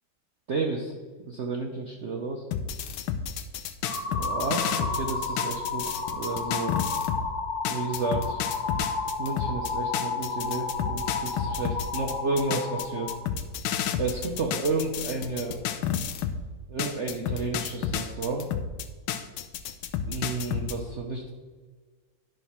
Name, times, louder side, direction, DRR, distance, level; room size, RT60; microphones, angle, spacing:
voice 1, 0.5-2.4 4.1-6.8 7.7-8.4 9.2-13.1 14.0-15.6 16.7-18.5 20.1-21.3, right 3 dB, 75° right, 0 dB, 0.6 m, -31 dB
sound 1, 2.5-7.3 7.6-16.4 16.8-20.8, left 8 dB, 85° left, 1.4 m, -31 dB
sound 2, 3.8-13.2, left 4 dB, 40° left, 1.3 m, -32 dB
10.5 x 3.8 x 5.8 m, 1.5 s
omnidirectional pair, 2.3 m